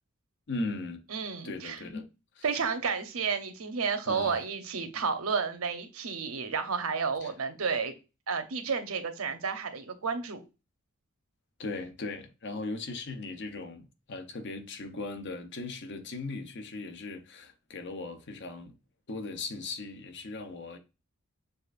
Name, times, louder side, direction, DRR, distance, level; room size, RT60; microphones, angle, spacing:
voice 1, 0.5-1.0 1.4-2.1 2.4-2.5 4.1-4.4 7.2-7.3 11.6-18.7 19.1-20.8, left 3 dB, 55° left, 0.7 m, -38 dB
voice 2, 1.1-1.8 2.4-7.9 8.3-10.4, right 5 dB, 80° right, 0.8 m, -31 dB
6.6 x 2.5 x 2.4 m
head